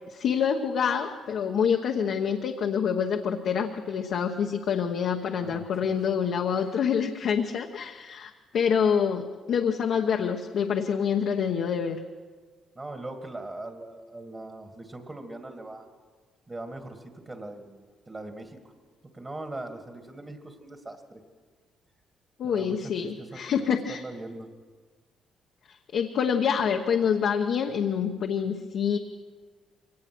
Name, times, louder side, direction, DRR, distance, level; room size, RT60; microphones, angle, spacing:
voice 1, 0.1-12.0 22.4-24.0 25.7-29.0, left 7 dB, 70° left, 2 dB, 1.1 m, -26 dB
voice 2, 5.4-5.9 6.6-6.7 12.8-15.9 16.5-18.6 19.1-21.2 22.4-24.5, right 2 dB, 25° right, 6 dB, 2.1 m, -41 dB
23.0 x 18.0 x 6.2 m, 1.4 s
cardioid pair, 90°, 0 cm